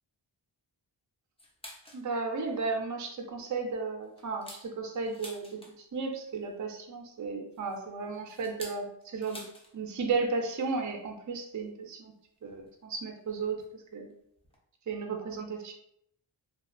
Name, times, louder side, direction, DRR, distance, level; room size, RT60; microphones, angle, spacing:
sound 1, 1.4-2.1 2.5-2.6 3.0-3.2 3.7-6.0 7.2-9.7 10.0-10.1 10.4-10.7 11.7-11.8 12.7-12.8 13.6-13.8 14.1-14.2 14.4-14.6, equal, 10° left, 0.6 m, -49 dB
voice 1, 1.9-5.5 5.9-9.4 9.7-12.1 12.4-13.6 13.9-14.1 14.9-15.7, right 4 dB, 40° right, 2 dB, 0.5 m, -34 dB
2.9 x 2.4 x 2.5 m, 0.71 s
wide cardioid pair, 65°, 47 cm